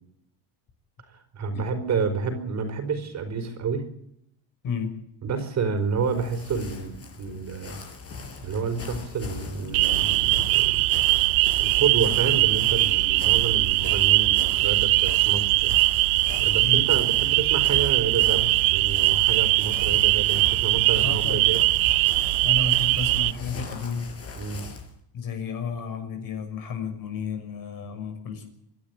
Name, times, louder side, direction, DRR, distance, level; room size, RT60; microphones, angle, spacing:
voice 1, 1.1-3.9 5.2-6.9 7.2-7.8 8.4-10.9 11.6-16.0 16.4-21.6 24.3-24.6 27.8-27.9, right 5 dB, 35° right, 8 dB, 4.7 m, -29 dB
sound 1, 5.8-24.9, left 4 dB, 30° left, 5.1 m, -40 dB
sound 2, 9.7-23.3, right 22 dB, 80° right, 0.8 m, -21 dB
voice 2, 21.0-21.4 22.4-24.1 25.1-28.4, left 5 dB, 45° left, 6 dB, 6.4 m, -32 dB
26.5 x 12.0 x 9.6 m, 0.74 s
cardioid pair, 145°, 45 cm